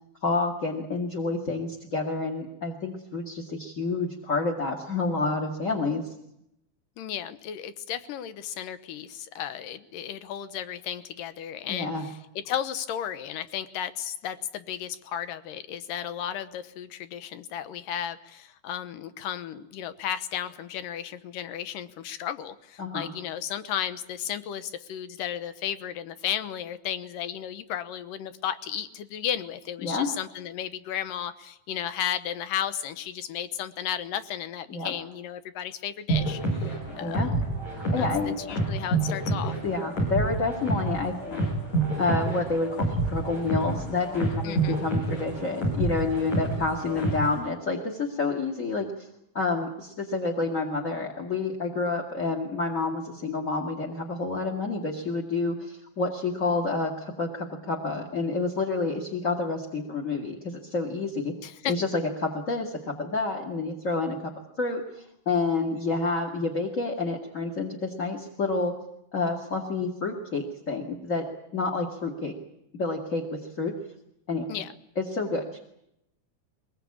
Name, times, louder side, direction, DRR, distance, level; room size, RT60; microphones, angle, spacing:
voice 1, 0.2-6.0 11.7-12.0 22.8-23.1 29.8-30.1 34.7-34.9 37.0-37.3 37.7-38.4 39.6-41.5 42.0-49.1 49.3-61.3 61.7-64.2 64.6-68.7 69.1-71.2 71.5-72.3 72.8-73.7 74.3-74.6 75.0-75.6, left 3 dB, 25° left, 0 dB, 2.0 m, -29 dB
voice 2, 7.0-37.5 38.0-38.1 38.5-39.6 44.4-44.8 61.4-61.7 74.5-74.7, left 10 dB, 75° left, 12 dB, 2.7 m, -34 dB
sound 1, 36.1-47.4, right 2 dB, 55° left, 9.4 m, -28 dB
23.0 x 21.5 x 8.7 m, 0.80 s
omnidirectional pair, 4.0 m